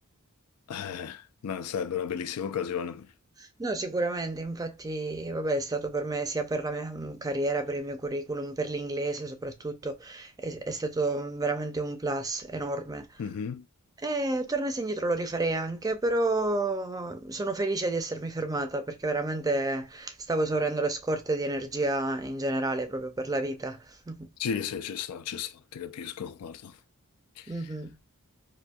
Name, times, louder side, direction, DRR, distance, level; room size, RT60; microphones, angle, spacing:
voice 1, 0.7-3.1 13.2-13.7 24.4-26.8 27.4-27.5, left 7 dB, 85° left, 0.4 m, -34 dB
voice 2, 3.4-13.2 14.0-24.3 27.5-28.0, right 2 dB, 15° right, 0.4 m, -30 dB
4.1 x 2.6 x 2.2 m
head